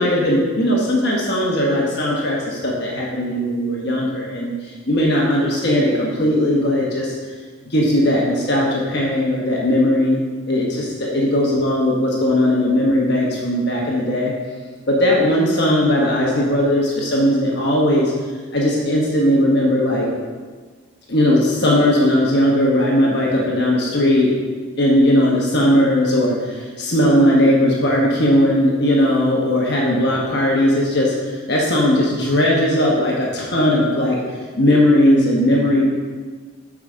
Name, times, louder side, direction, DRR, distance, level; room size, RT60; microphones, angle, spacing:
voice 1, 0.0-4.5 4.9-7.1 7.7-14.3 14.9-18.1 18.5-20.1 21.1-24.3 24.8-34.2 34.6-35.9, left 1 dB, 55° left, -3 dB, 1.2 m, -18 dB
8.1 x 4.9 x 5.0 m, 1.5 s
head